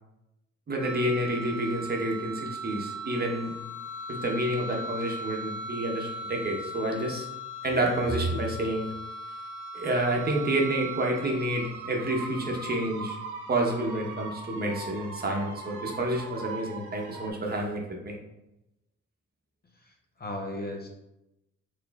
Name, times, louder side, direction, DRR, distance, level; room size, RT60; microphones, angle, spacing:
voice 1, 0.7-3.5 4.1-7.3 7.6-8.9 9.7-13.2 13.5-18.2, right 1 dB, 30° right, 0 dB, 0.9 m, -29 dB
sound 1, 0.8-17.3, right 1 dB, 85° right, 0.8 m, -39 dB
voice 2, 19.8-20.9, left 1 dB, 30° left, 2 dB, 0.6 m, -37 dB
4.8 x 3.0 x 2.3 m, 0.89 s
cardioid pair, 90°, 30 cm